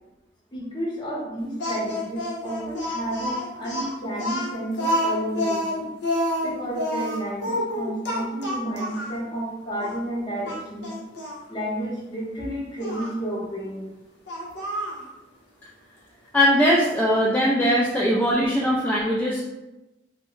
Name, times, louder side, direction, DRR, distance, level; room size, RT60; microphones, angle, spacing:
voice 1, 0.5-5.9 6.4-10.9 11.5-13.8, right 1 dB, 25° left, -5 dB, 0.8 m, -31 dB
Speech, 1.6-9.2 9.8-9.9 10.4-11.4 12.8-13.1 14.3-15.0, equal, 90° left, 0.7 m, -28 dB
voice 2, 16.3-19.5, equal, 10° left, -6 dB, 0.3 m, -20 dB
2.5 x 2.0 x 3.6 m, 1.0 s
head